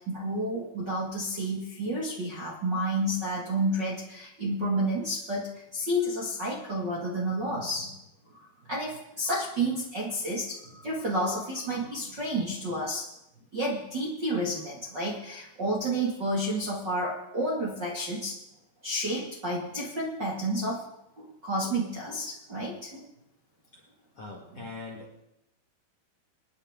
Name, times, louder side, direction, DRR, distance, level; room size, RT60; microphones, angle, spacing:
voice 1, 0.0-7.9 8.3-13.1 13.5-18.4 18.8-20.8 21.2-23.0 24.5-24.7, right 1 dB, 40° right, -5 dB, 1.7 m, -30 dB
voice 2, 24.1-25.2, left 3 dB, 50° left, -2 dB, 1.8 m, -42 dB
26.0 x 10.0 x 3.8 m, 0.86 s
omnidirectional pair, 5.4 m